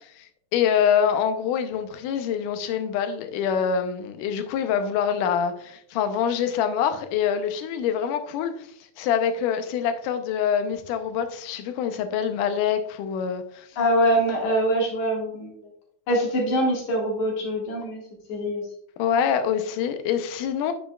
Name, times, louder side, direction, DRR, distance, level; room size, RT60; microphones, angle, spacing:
voice 1, 0.0-8.7 9.0-13.7 19.0-20.7, left 8 dB, 80° left, 2.2 m, -25 dB
voice 2, 13.8-15.5 16.1-18.0 18.3-18.6, equal, 65° left, 3.1 m, -23 dB
8.6 x 7.1 x 2.3 m
omnidirectional pair, 3.8 m